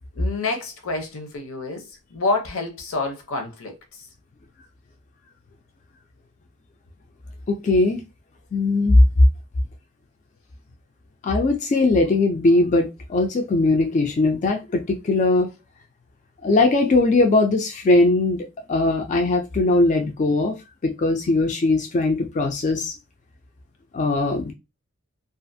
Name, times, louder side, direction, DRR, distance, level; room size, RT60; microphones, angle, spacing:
voice 1, 0.1-4.1, left 3 dB, 65° left, 0.7 m, -28 dB
voice 2, 7.5-8.0 8.5-9.0 11.2-15.5 16.4-20.6 20.8-22.9 23.9-24.5, left 2 dB, 35° left, 0.3 m, -20 dB
2.4 x 2.4 x 2.6 m
head